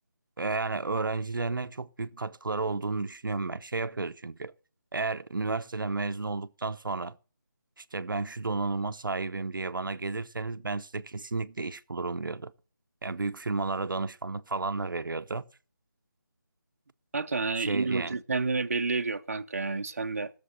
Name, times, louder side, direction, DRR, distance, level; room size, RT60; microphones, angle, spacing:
voice 1, 0.4-4.5 4.9-7.2 7.8-12.5 13.0-15.4 17.6-18.2, right 3 dB, 80° right, 0.8 m, -32 dB
voice 2, 17.1-20.3, right 4 dB, 45° right, 0.7 m, -30 dB
15.0 x 6.9 x 6.3 m
figure-of-eight pair, 175°, 11 cm